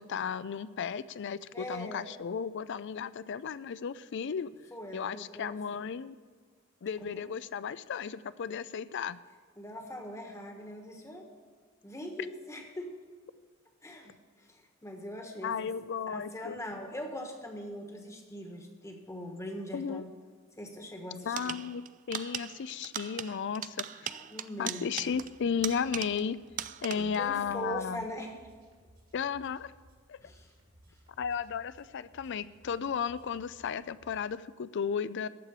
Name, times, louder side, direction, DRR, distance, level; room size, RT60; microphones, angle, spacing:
voice 1, 0.0-4.5 4.9-6.2 6.8-9.2 15.4-16.6 19.7-20.0 21.3-24.1 24.6-26.4 26.8-28.0 29.1-29.7 30.1-30.2 31.2-35.3, left 7 dB, 60° left, 17 dB, 0.4 m, -34 dB
voice 2, 1.5-2.1 4.7-5.6 7.0-7.3 9.6-11.3 11.8-12.9 13.8-15.7 16.1-20.1 20.6-21.5 24.1-24.9 26.9-28.4 30.2-30.5, equal, 15° left, 3 dB, 1.4 m, -41 dB
sound 1, 21.4-26.3 26.6-27.3, right 10 dB, 40° right, 0.4 m, -39 dB
sound 2, 25.0-34.3, equal, 70° right, 3.5 m, -61 dB
14.0 x 4.9 x 8.7 m, 1.5 s
head